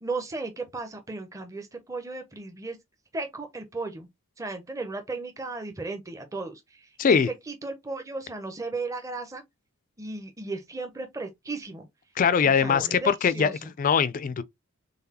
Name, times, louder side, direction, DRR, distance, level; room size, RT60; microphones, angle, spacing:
voice 1, 0.0-2.8 3.1-4.1 4.4-7.2 7.5-9.4 10.0-11.9 12.4-13.7, right 3 dB, 15° right, 0.5 m, -35 dB
voice 2, 12.2-13.5 13.8-14.4, left 6 dB, 35° left, 0.3 m, -22 dB
3.9 x 3.4 x 2.8 m
head